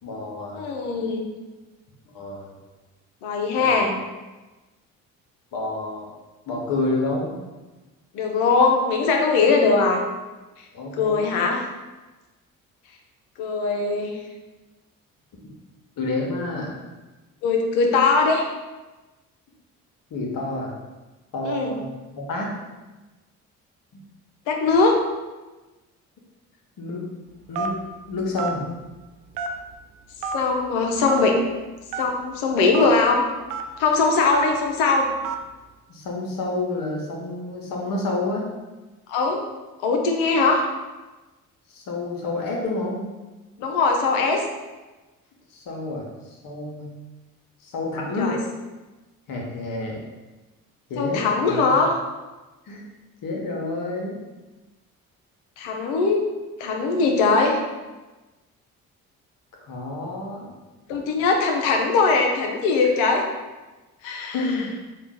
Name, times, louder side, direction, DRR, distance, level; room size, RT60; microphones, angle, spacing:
voice 1, 0.0-0.6 2.1-2.5 3.6-3.8 5.5-6.1 6.5-7.4 10.7-11.3 16.0-16.7 20.1-20.8 21.3-22.5 23.9-24.0 26.8-27.1 27.5-27.7 28.1-28.7 35.9-38.5 41.7-43.0 45.5-46.9 47.6-48.4 49.3-50.0 50.9-51.8 52.6-52.8 53.2-54.2 59.6-60.5 64.3-64.7, left 2 dB, 55° left, -1 dB, 1.1 m, -29 dB
voice 2, 0.5-1.3 3.2-3.9 8.1-10.0 10.9-11.6 13.4-14.2 17.4-18.5 21.4-21.7 24.5-25.0 30.3-31.4 32.0-33.2 33.8-35.1 39.1-39.4 39.8-40.6 43.6-44.4 48.2-48.4 51.0-51.9 55.6-56.3 56.6-57.6 60.9-63.3 64.0-64.4, left 4 dB, 75° left, 2 dB, 0.7 m, -20 dB
Telephone, 27.6-27.9 28.4-28.6 29.3-29.7 30.2-30.3 31.1-31.2 31.9-32.1 32.7-32.9 33.5-33.6 34.3-34.6 35.2-35.4, right 6 dB, 75° right, 0.5 m, -28 dB
3.7 x 2.4 x 3.7 m, 1.2 s
hypercardioid pair, 50°, 41 cm